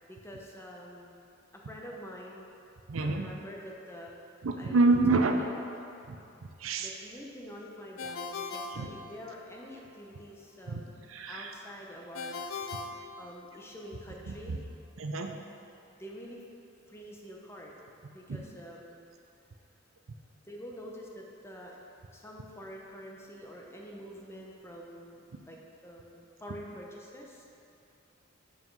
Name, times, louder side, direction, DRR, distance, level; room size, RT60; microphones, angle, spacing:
voice 1, 0.1-1.2 1.5-2.5 3.0-4.2 4.6-5.5 6.8-10.9 11.3-12.4 13.2-14.6 15.9-16.4 16.9-17.8 18.1-19.0 20.5-21.8 22.1-27.5, equal, 15° left, -2 dB, 0.7 m, -46 dB
voice 2, 2.9-3.2 4.4-5.3 6.1-6.2 6.6-6.9 8.7-8.9 10.7-10.8 11.1-11.5 14.3-14.6 15.0-15.3 18.3-18.4, right 3 dB, 90° right, 4 dB, 0.6 m, -27 dB
Ringtone, 8.0-9.6 12.1-13.8, left 4 dB, 85° left, 0.5 m, -40 dB
5.6 x 5.0 x 5.3 m, 2.7 s
head